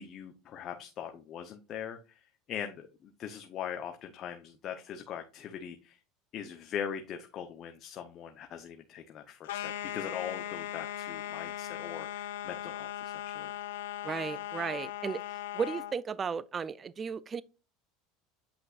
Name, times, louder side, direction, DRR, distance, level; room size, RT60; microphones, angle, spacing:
voice 1, 0.0-2.0 2.5-6.0 6.3-13.5, left 8 dB, 45° left, 0.9 m, -41 dB
sound 1, 9.4-16.0, left 12 dB, 85° left, 0.7 m, -39 dB
voice 2, 14.0-17.4, right 6 dB, 30° right, 0.4 m, -35 dB
8.3 x 5.3 x 2.5 m
supercardioid pair, 95°, 0 cm